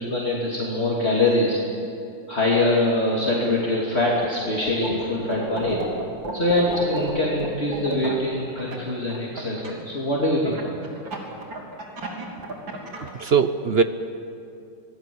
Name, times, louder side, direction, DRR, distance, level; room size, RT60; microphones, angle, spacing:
voice 1, 0.0-1.6 2.3-5.8 6.3-10.9, left 2 dB, 35° left, -4 dB, 3.2 m, -23 dB
sound 1, 4.2-5.0 5.3-9.7 10.4-13.1, right 2 dB, 80° right, 4.0 m, -32 dB
voice 2, 12.8-13.8, right 6 dB, 50° right, 9 dB, 0.8 m, -21 dB
27.0 x 19.5 x 8.7 m, 2.6 s
omnidirectional pair, 2.1 m